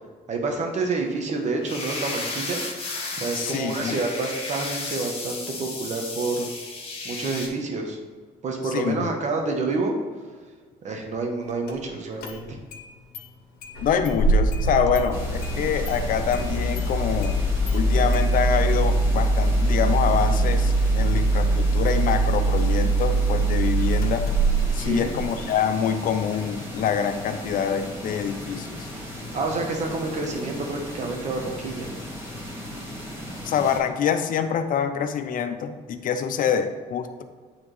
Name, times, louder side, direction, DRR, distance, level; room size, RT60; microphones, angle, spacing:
voice 1, 0.3-2.6 3.1-6.5 7.0-8.0 8.4-9.9 10.8-12.6 24.8-25.1 29.0-31.9, right 3 dB, 45° right, 2 dB, 1.2 m, -28 dB
sound 1, 1.6-7.5, left 3 dB, 35° left, 1.4 m, -33 dB
voice 2, 3.3-4.0 8.6-9.1 13.8-17.4 17.7-24.3 24.7-28.8 33.4-37.2, left 7 dB, 55° left, 9 dB, 0.6 m, -25 dB
Engine starting, 11.7-11.8 12.2-12.8 13.1-13.2 13.6-25.5, right 2 dB, 70° left, 1.1 m, -23 dB
sound 2, 15.1-33.8, left 1 dB, 15° right, 1.8 m, -37 dB
9.1 x 3.5 x 3.2 m, 1.5 s
cardioid pair, 110°, 17 cm